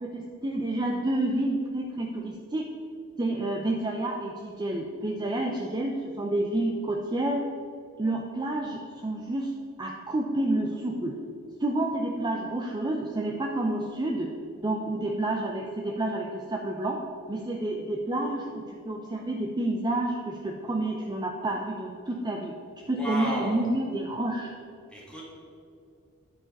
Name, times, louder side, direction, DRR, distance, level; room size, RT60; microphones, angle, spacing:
voice 1, 0.0-2.6 3.2-7.4 8.0-9.5 9.8-11.2 11.6-14.3 14.6-17.0 17.3-22.5 22.9-24.5, right 1 dB, 20° right, 0 dB, 0.5 m, -29 dB
voice 2, 23.0-23.7 24.9-25.2, right 1 dB, 5° left, -5 dB, 1.9 m, -33 dB
9.4 x 4.9 x 5.3 m, 2.5 s
head